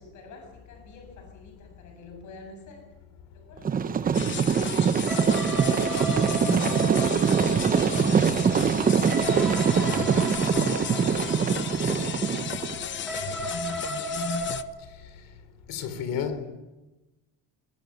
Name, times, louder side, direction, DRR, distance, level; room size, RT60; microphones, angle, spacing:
voice 1, 0.0-2.9 3.3-6.3 12.2-13.8, left 2 dB, 60° left, 7.5 m, -49 dB
sound 1, 3.6-12.7, right 6 dB, 25° right, 0.9 m, -23 dB
sound 2, 4.1-14.6, left 9 dB, 35° left, 0.8 m, -34 dB
sound 3, 5.1-14.6, right 1 dB, ahead, 6.1 m, -35 dB
voice 2, 15.7-16.4, left 7 dB, 80° left, 3.6 m, -30 dB
22.0 x 20.0 x 9.5 m
cardioid pair, 150°, 33 cm